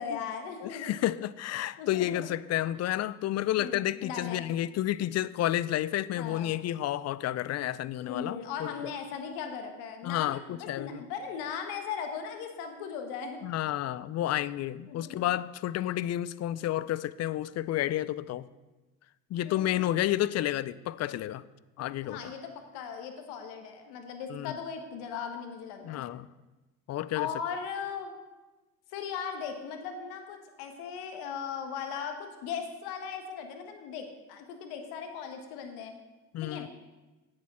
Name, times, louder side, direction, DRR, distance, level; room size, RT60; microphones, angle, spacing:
voice 1, 0.0-1.0 1.8-2.3 3.6-4.4 6.1-6.6 8.0-13.4 14.9-15.3 15.8-16.0 19.4-19.9 22.0-26.0 27.1-28.1 28.9-35.9 36.4-36.7, left 6 dB, 75° left, 1.5 m, -38 dB
voice 2, 0.6-8.7 10.0-11.0 13.4-18.5 19.3-21.4 21.8-22.3 24.3-24.5 25.8-26.3 26.9-27.3 36.3-36.7, left 13 dB, 45° left, 0.4 m, -31 dB
8.4 x 7.5 x 5.6 m
hypercardioid pair, 65°, 39 cm